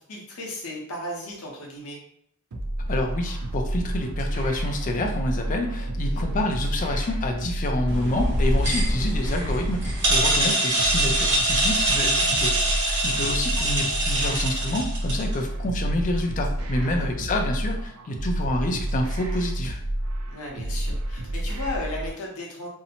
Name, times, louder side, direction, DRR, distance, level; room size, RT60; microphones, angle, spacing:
voice 1, 0.1-2.0 6.0-6.3 16.8-17.1 20.3-22.7, left 1 dB, 75° left, -2 dB, 0.7 m, -35 dB
sound 1, 2.5-22.1, right 1 dB, 85° right, 0.5 m, -29 dB
voice 2, 2.9-19.8, left 1 dB, 35° left, 3 dB, 0.3 m, -28 dB
sound 2, 7.9-15.3, right 1 dB, 50° right, 1.2 m, -24 dB
2.6 x 2.0 x 2.8 m, 0.69 s
head